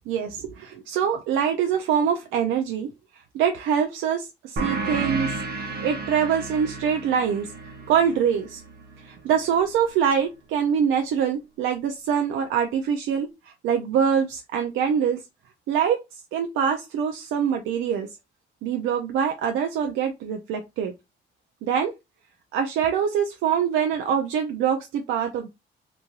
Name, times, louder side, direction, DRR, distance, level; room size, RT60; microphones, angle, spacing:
voice 1, 0.1-2.9 3.3-8.6 9.0-15.2 15.7-16.0 16.3-18.1 18.6-20.9 21.6-21.9 22.5-25.5, right 7 dB, 90° right, 4 dB, 0.4 m, -24 dB
sound 1, 4.6-9.7, right 3 dB, 55° right, 0.8 m, -33 dB
3.0 x 2.6 x 2.3 m, 0.22 s
cardioid pair, 90°, 20 cm